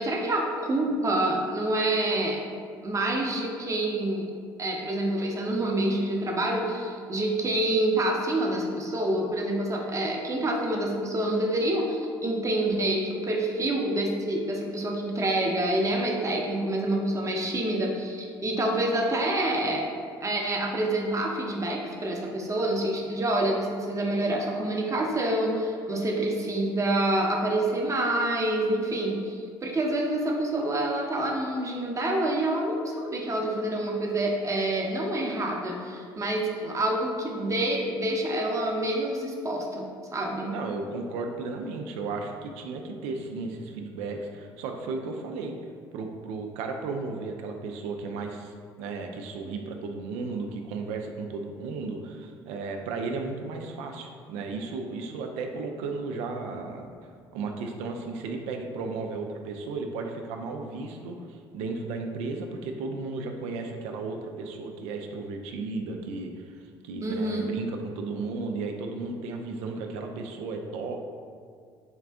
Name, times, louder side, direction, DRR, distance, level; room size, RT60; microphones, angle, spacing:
voice 1, 0.0-2.4 2.8-4.3 4.6-19.9 20.2-40.6 49.4-49.5 67.0-67.5, right 1 dB, 25° right, 0 dB, 0.8 m, -27 dB
voice 2, 40.4-45.6 45.9-66.6 66.8-71.0, right 3 dB, 70° right, 3 dB, 0.4 m, -34 dB
4.5 x 2.4 x 3.4 m, 2.1 s
hypercardioid pair, 60°, 12 cm